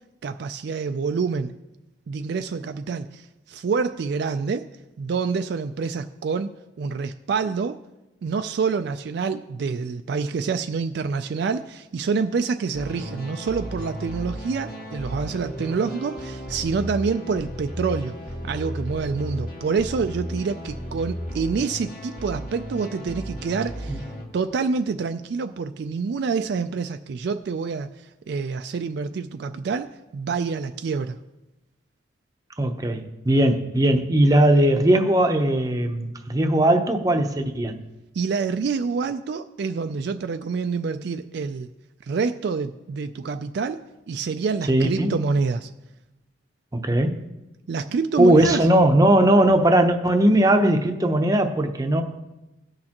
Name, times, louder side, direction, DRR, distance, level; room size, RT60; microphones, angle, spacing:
voice 1, 0.2-1.5 2.1-4.7 5.0-6.5 6.8-7.8 8.2-18.2 18.4-24.0 24.3-31.2 38.1-41.7 42.1-45.7 47.7-48.7, right 5 dB, 55° right, 8 dB, 0.3 m, -27 dB
sound 1, 12.7-24.3, equal, 50° left, 1.8 m, -34 dB
voice 2, 32.6-37.8 44.7-45.1 46.7-47.2 48.2-52.0, right 1 dB, 20° right, 5 dB, 0.7 m, -19 dB
18.0 x 6.4 x 2.9 m, 1.0 s
head